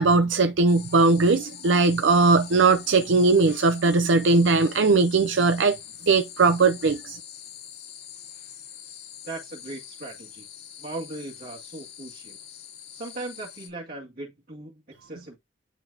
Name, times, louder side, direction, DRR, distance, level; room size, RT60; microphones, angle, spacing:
voice 1, 0.0-5.8 6.1-7.2, right 3 dB, 85° right, 0.6 m, -19 dB
sound 1, 0.7-13.7, left 10 dB, 55° left, 2.6 m, -44 dB
voice 2, 9.2-10.5 10.8-12.4 12.9-15.4, right 2 dB, 55° right, 1.9 m, -38 dB
11.0 x 4.0 x 2.8 m
head